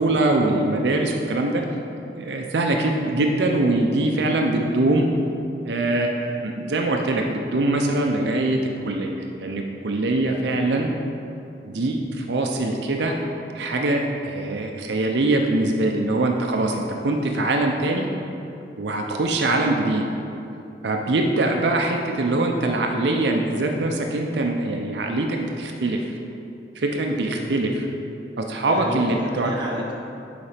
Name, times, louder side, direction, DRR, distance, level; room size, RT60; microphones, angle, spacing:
voice 1, 0.0-1.6 2.1-5.1 5.6-8.6 8.8-10.9 11.6-13.1 13.5-18.1 18.8-20.0 20.8-26.2 26.7-27.9 28.4-29.5, right 2 dB, 75° right, 2 dB, 0.6 m, -23 dB
voice 2, 10.3-10.6 27.3-27.6 28.6-29.9, right 1 dB, 25° right, -3 dB, 1.0 m, -32 dB
7.1 x 5.0 x 5.0 m, 2.7 s
head